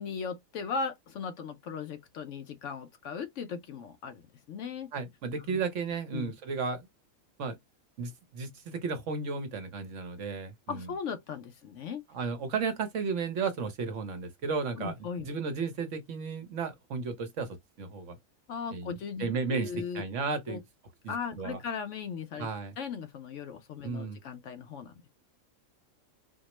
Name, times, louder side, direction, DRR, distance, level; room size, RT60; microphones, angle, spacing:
voice 1, 0.0-4.2 4.5-4.9 5.5-5.6 6.1-6.4 10.7-12.0 14.8-15.3 18.5-20.0 20.5-20.6 21.1-22.5 22.8-25.1, left 6 dB, 65° left, 0.9 m, -37 dB
voice 2, 4.9-6.9 7.4-7.6 8.0-10.9 12.1-14.9 15.2-18.2 18.7-20.6 21.0-21.6 22.4-22.7 23.8-24.2, right 5 dB, 65° right, 1.1 m, -34 dB
4.2 x 2.0 x 2.9 m
omnidirectional pair, 1.5 m